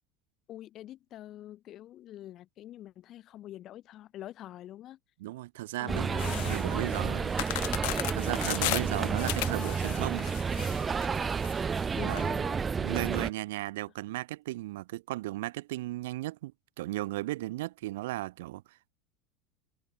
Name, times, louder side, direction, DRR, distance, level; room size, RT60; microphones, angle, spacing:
voice 1, 0.5-5.0 5.8-7.3 8.9-9.3 11.9-12.6, left 13 dB, 40° left, 1.5 m, -45 dB
voice 2, 5.2-7.3 8.1-10.3 12.0-12.2 12.8-16.5 16.8-18.9, right 17 dB, 85° right, 2.4 m, -35 dB
sound 1, 5.9-13.3, right 5 dB, 20° right, 0.6 m, -31 dB
sound 2, 6.2-12.2, left 28 dB, 70° left, 0.8 m, -36 dB
supercardioid pair, 135°, 0 cm